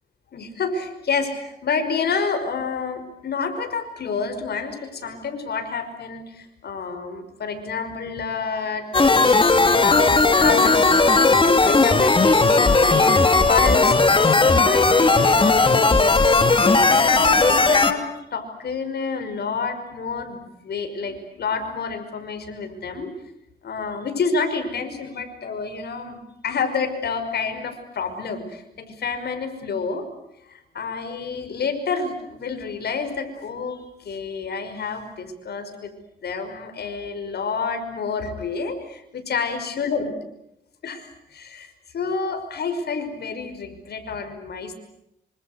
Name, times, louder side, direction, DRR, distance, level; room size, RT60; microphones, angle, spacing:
voice 1, 0.3-9.5 9.8-10.1 10.4-10.8 11.2-18.0 18.3-23.1 23.6-26.2 26.4-30.1 30.5-35.9 36.2-40.1 40.8-44.7, left 5 dB, 65° left, 7 dB, 5.4 m, -29 dB
sound 1, 8.9-17.9, left 3 dB, 30° left, 2.5 m, -16 dB
26.5 x 25.5 x 8.0 m, 0.83 s
cardioid pair, 85°, 18 cm